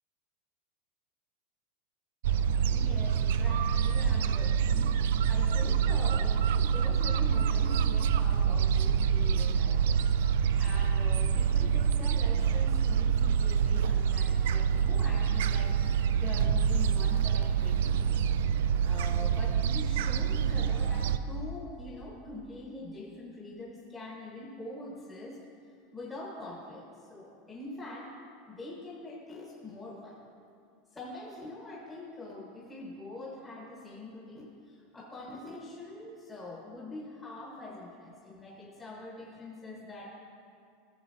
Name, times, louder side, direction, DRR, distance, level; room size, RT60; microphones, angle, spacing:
Gull seagull, 2.2-21.2, right 7 dB, 80° right, 0.3 m, -26 dB
voice 1, 2.7-25.4 25.9-28.2 28.5-30.2 30.9-40.2, left 2 dB, 15° left, -4 dB, 1.4 m, -44 dB
15.5 x 6.8 x 2.8 m, 2.4 s
supercardioid pair, 120°, 0 cm